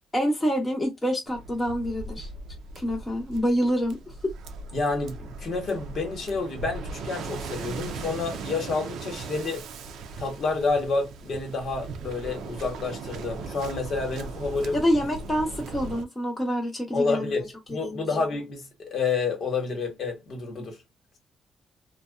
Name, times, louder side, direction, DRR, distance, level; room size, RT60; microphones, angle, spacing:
voice 1, 0.1-2.3 2.8-4.0 4.2-4.3 14.7-18.0, equal, 15° left, 0.8 m, -27 dB
Waves surf, 1.3-16.1, right 3 dB, 75° right, 0.4 m, -38 dB
voice 2, 4.7-9.7 10.2-14.8 16.9-20.8, left 4 dB, 60° left, 1.2 m, -29 dB
2.6 x 2.2 x 2.2 m
cardioid pair, 90°, 0 cm